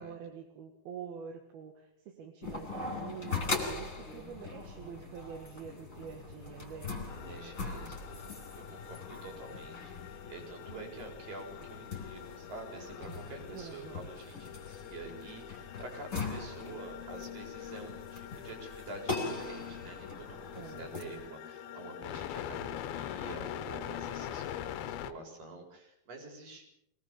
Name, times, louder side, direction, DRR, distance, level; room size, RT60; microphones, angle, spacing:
voice 1, 0.0-6.9 10.7-10.9 13.5-14.1 20.5-20.9, right 7 dB, 80° right, 3 dB, 3.5 m, -46 dB
sound 1, 2.4-21.3, left 3 dB, 20° left, 4.1 m, -41 dB
sound 2, 7.1-25.1, left 10 dB, 85° left, 2.9 m, -44 dB
voice 2, 7.1-8.1 8.5-26.6, right 3 dB, 65° right, 3 dB, 6.0 m, -48 dB
23.5 x 18.5 x 6.9 m, 0.77 s
omnidirectional pair, 4.3 m